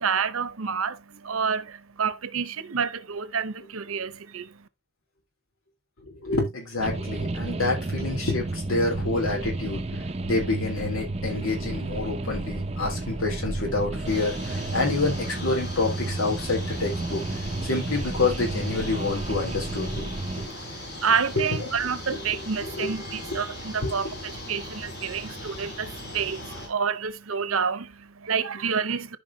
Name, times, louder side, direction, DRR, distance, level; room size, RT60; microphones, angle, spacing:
voice 1, 0.0-4.6 20.5-29.2, right 6 dB, 85° right, 0.8 m, -29 dB
voice 2, 6.1-17.2 17.6-20.1 20.4-20.5 21.4-21.7 22.1-22.9 23.3-23.4 23.8-23.9, left 3 dB, 85° left, 3.2 m, -28 dB
sound 1, 6.8-20.5, right 2 dB, 30° right, 0.6 m, -31 dB
sound 2, 14.1-26.7, left 1 dB, 50° left, 3.5 m, -39 dB
14.0 x 5.0 x 2.7 m
head